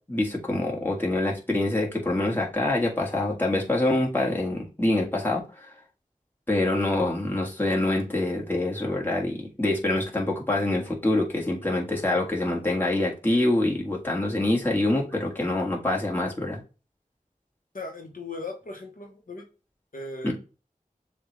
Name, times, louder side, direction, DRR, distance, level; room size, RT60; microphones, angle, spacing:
voice 1, 0.1-5.4 6.5-16.6 20.2-20.3, left 1 dB, 15° left, -2 dB, 1.6 m, -25 dB
voice 2, 17.7-19.5 19.9-20.3, left 3 dB, 65° left, 1 dB, 0.9 m, -37 dB
7.0 x 2.4 x 3.1 m, 0.32 s
wide cardioid pair, 40°, 15 cm